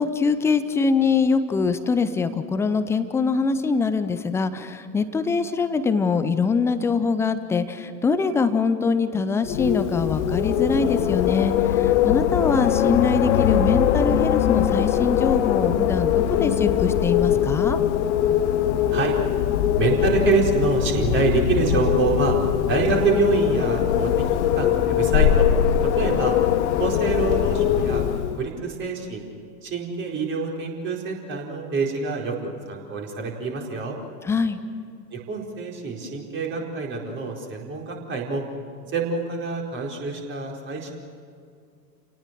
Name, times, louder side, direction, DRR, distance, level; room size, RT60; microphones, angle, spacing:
voice 1, 0.0-17.8 34.3-34.6, left 4 dB, 5° left, 11 dB, 0.5 m, -23 dB
Wind, 9.4-28.5, left 10 dB, 40° left, 1.3 m, -21 dB
voice 2, 19.8-22.4 22.7-24.1 24.6-25.5 25.8-26.3 26.8-28.0 28.3-29.2 29.6-34.0 35.1-38.4 38.9-40.9, right 4 dB, 25° right, 0 dB, 4.5 m, -26 dB
30.0 x 18.5 x 6.7 m, 2.3 s
figure-of-eight pair, 100°, 50 cm